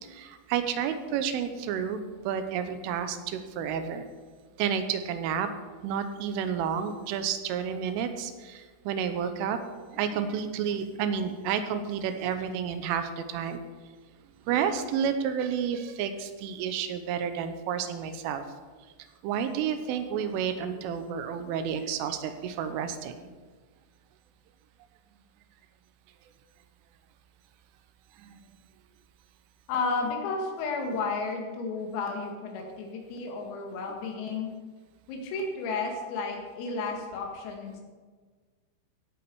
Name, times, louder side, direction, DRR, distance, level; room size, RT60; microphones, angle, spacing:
voice 1, 0.0-4.0 4.6-5.5 5.8-9.6 9.9-13.6 14.5-18.4 19.2-23.3 28.2-28.4, right 7 dB, 80° right, 8 dB, 3.3 m, -30 dB
voice 2, 29.7-34.5 35.1-37.8, left 4 dB, 85° left, 1 dB, 4.7 m, -32 dB
16.5 x 8.4 x 4.7 m, 1.4 s
omnidirectional pair, 5.9 m